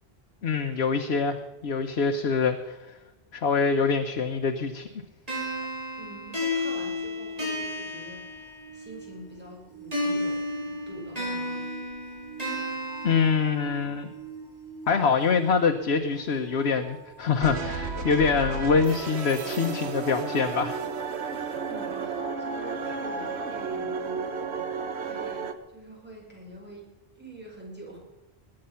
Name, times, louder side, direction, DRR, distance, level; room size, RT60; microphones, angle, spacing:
voice 1, 0.4-3.0 3.3-4.9 13.0-14.1 14.9-20.8, left 5 dB, 75° left, 4 dB, 1.2 m, -25 dB
sound 1, 5.3-8.9 9.9-13.9, left 1 dB, 35° right, 4.5 m, -32 dB
voice 2, 5.9-11.6 21.7-28.0, right 1 dB, 10° right, -3 dB, 5.0 m, -46 dB
sound 2, 8.1-17.9 20.2-20.3, right 6 dB, 50° left, 4.7 m, -46 dB
sound 3, 17.4-25.5, right 5 dB, 80° right, 1.3 m, -32 dB
20.5 x 8.9 x 5.7 m, 1.1 s
omnidirectional pair, 1.1 m